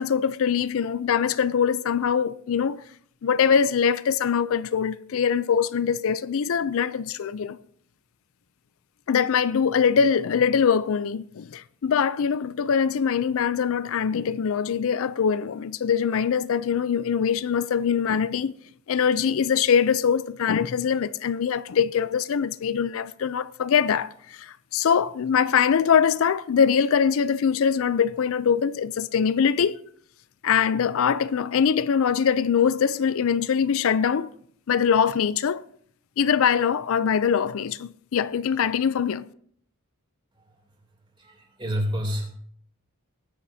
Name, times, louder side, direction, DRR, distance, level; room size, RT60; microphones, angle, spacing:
voice 1, 0.0-2.8 3.2-7.6 9.1-18.5 18.9-29.8 30.4-34.3 34.7-35.6 36.2-39.2, left 7 dB, 65° left, 0.4 m, -23 dB
voice 2, 41.2-42.3, equal, 25° right, 2.8 m, -28 dB
19.5 x 9.9 x 2.7 m
head